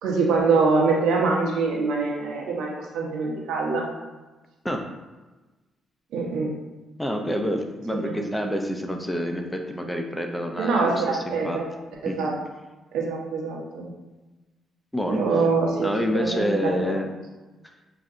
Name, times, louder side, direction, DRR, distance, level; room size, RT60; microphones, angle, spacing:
voice 1, 0.0-3.8 6.1-6.5 7.9-8.1 10.6-11.7 12.0-12.3 12.9-13.9 15.1-17.0, right 4 dB, 85° right, -2 dB, 0.8 m, -24 dB
voice 2, 7.0-11.6 12.1-12.3 14.9-15.2 15.8-17.0, equal, 5° left, 3 dB, 0.5 m, -27 dB
5.7 x 2.5 x 2.5 m, 1.2 s
cardioid pair, 90°, 0 cm